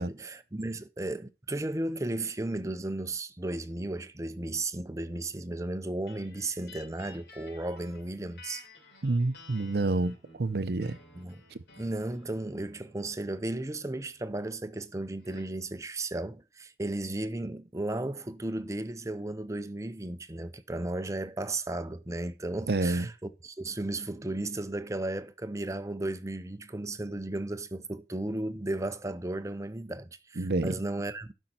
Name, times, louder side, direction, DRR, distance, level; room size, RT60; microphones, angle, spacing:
voice 1, 0.0-8.7 11.2-11.4 11.8-31.3, right 2 dB, 15° right, 0.6 m, -35 dB
sound 1, 6.1-15.6, left 3 dB, 70° left, 3.3 m, -55 dB
voice 2, 9.0-11.0 11.5-11.6 22.7-23.1 30.4-30.7, right 2 dB, 60° right, 0.6 m, -28 dB
12.0 x 5.4 x 4.3 m
head